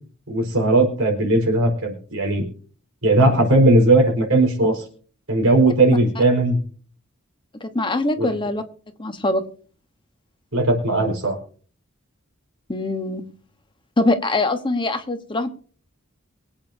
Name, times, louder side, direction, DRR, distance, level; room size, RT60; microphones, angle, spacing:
voice 1, 0.3-2.4 3.0-4.8 5.3-6.6 8.2-8.3 10.5-11.4, right 2 dB, 85° right, 1 dB, 4.7 m, -18 dB
voice 2, 7.6-8.6 9.0-9.4 12.7-13.2 14.0-15.5, left 2 dB, 25° left, 7 dB, 1.1 m, -23 dB
24.0 x 8.6 x 2.7 m, 0.43 s
head